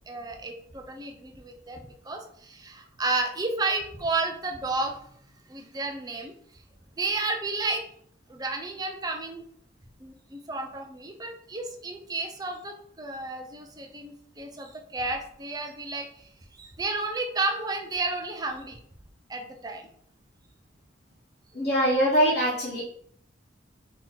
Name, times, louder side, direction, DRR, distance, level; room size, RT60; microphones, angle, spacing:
voice 1, 0.1-5.1 5.5-6.3 7.0-7.8 8.3-9.4 10.0-18.8 19.3-19.9, right 3 dB, 20° right, 4 dB, 0.5 m, -32 dB
voice 2, 21.5-22.8, equal, 35° left, -8 dB, 1.2 m, -23 dB
4.1 x 2.9 x 3.7 m, 0.63 s
head